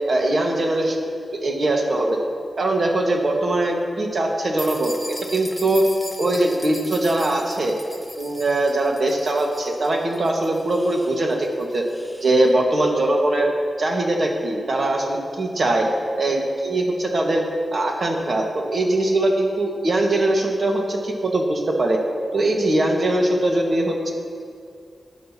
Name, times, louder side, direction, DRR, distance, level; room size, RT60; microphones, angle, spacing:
voice 1, 0.1-1.0 1.4-2.2 2.6-5.0 5.3-5.8 6.2-7.7 8.2-11.8 12.2-13.5 13.8-15.9 16.2-17.4 17.7-22.0 22.3-24.1, right 2 dB, 55° right, 1 dB, 1.6 m, -21 dB
sound 1, 4.6-12.4, equal, ahead, 1.1 m, -39 dB
16.0 x 10.0 x 2.9 m, 2.3 s
cardioid pair, 65°, 0 cm